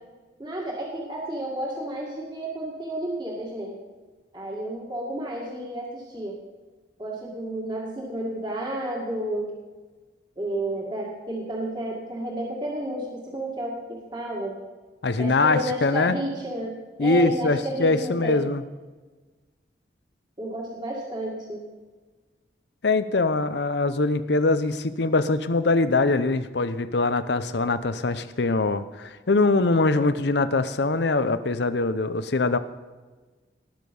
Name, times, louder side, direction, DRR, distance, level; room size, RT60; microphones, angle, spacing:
voice 1, 0.4-3.8 4.3-6.4 7.0-9.5 10.4-14.6 15.2-16.7 17.0-18.4 20.4-21.6, right 1 dB, 25° right, -3 dB, 2.0 m, -31 dB
voice 2, 15.0-16.2 17.0-18.6 22.8-32.6, left 3 dB, 70° left, 13 dB, 0.7 m, -23 dB
19.0 x 6.8 x 5.4 m, 1.3 s
head